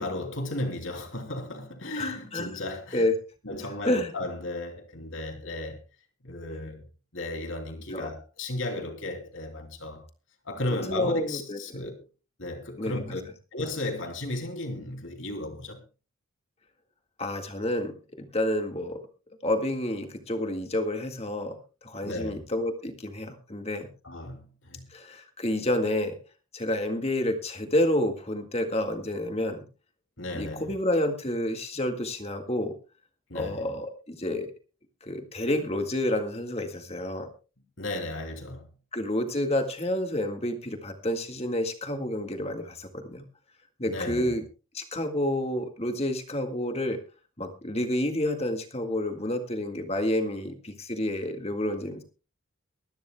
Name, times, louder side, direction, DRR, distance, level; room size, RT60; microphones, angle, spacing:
voice 1, 0.0-3.1 3.4-5.8 6.2-6.9 7.1-10.0 10.4-12.1 12.4-13.2 13.5-15.8 22.0-22.4 24.0-24.9 30.2-30.8 33.3-33.6 37.8-38.7 43.8-44.3, left 2 dB, 60° left, 3.0 m, -35 dB
voice 2, 2.0-2.5 2.9-3.1 3.8-4.1 7.9-8.1 10.9-11.6 12.8-13.0 17.2-19.0 19.4-23.9 24.9-26.2 26.5-29.6 30.3-32.8 33.3-34.5 35.0-37.3 38.9-43.3 43.8-44.4 44.7-47.0 47.4-52.0, left 1 dB, 30° left, 1.8 m, -29 dB
23.5 x 12.5 x 2.3 m
head